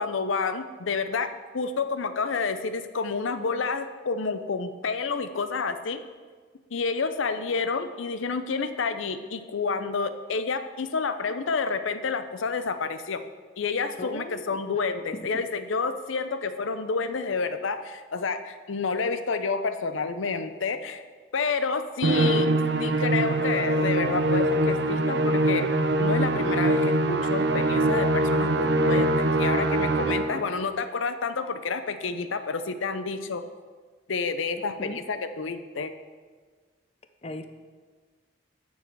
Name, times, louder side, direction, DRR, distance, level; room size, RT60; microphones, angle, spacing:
voice 1, 0.0-6.0 6.7-13.2 13.6-21.0 21.3-22.5 22.8-25.7 26.0-33.4 34.1-35.9, left 4 dB, 80° left, 10 dB, 0.6 m, -29 dB
voice 2, 14.0-14.6 15.3-15.4 34.8-35.0 37.2-37.4, left 1 dB, 30° left, 8 dB, 0.5 m, -37 dB
Musical instrument, 22.0-30.5, right 2 dB, 60° right, 0.5 m, -23 dB
9.4 x 6.4 x 4.6 m, 1.5 s
head